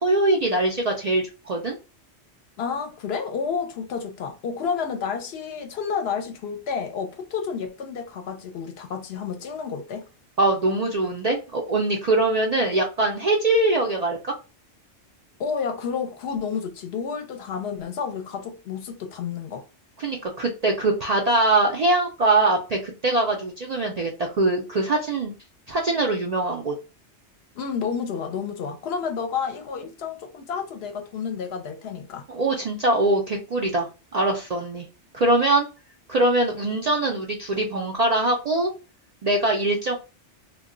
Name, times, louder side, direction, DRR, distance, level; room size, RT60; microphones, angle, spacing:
voice 1, 0.0-1.8 10.4-14.3 20.0-25.3 25.7-26.7 32.3-34.9 35.1-35.7 36.1-38.7 39.2-40.0, right 2 dB, 60° right, 0.4 m, -22 dB
voice 2, 2.6-10.0 15.4-19.6 27.6-32.3, left 6 dB, 65° left, 0.7 m, -30 dB
2.2 x 2.2 x 3.6 m
omnidirectional pair, 1.2 m